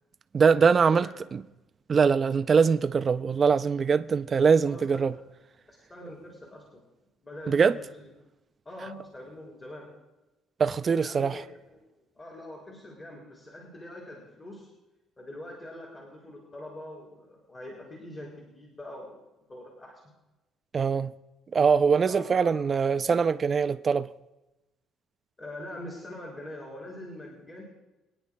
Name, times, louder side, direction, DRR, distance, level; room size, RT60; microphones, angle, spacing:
voice 1, 0.3-1.4 1.9-5.1 7.5-7.8 10.6-11.4 20.7-21.1 21.5-24.1, right 5 dB, 35° right, 0.4 m, -23 dB
voice 2, 4.7-5.0 5.9-6.8 7.2-8.1 8.7-9.9 11.0-11.4 11.7-11.8 12.1-14.7 15.2-19.2 19.5-20.0 22.1-22.6 25.4-27.6, left 1 dB, 25° left, 3.6 m, -43 dB
25.0 x 9.8 x 2.2 m
cardioid pair, 130°, 0 cm